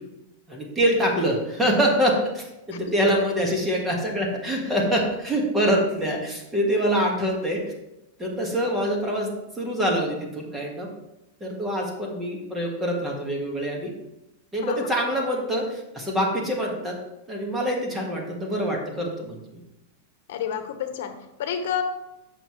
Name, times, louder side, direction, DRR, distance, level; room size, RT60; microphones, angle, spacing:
voice 1, 0.5-7.6 8.2-10.9 11.4-13.9 14.5-17.0 17.3-19.6, equal, 10° right, -1 dB, 1.5 m, -25 dB
voice 2, 20.3-21.8, left 8 dB, 70° left, 8 dB, 1.0 m, -30 dB
7.7 x 6.3 x 3.1 m, 0.92 s
supercardioid pair, 155°, 0 cm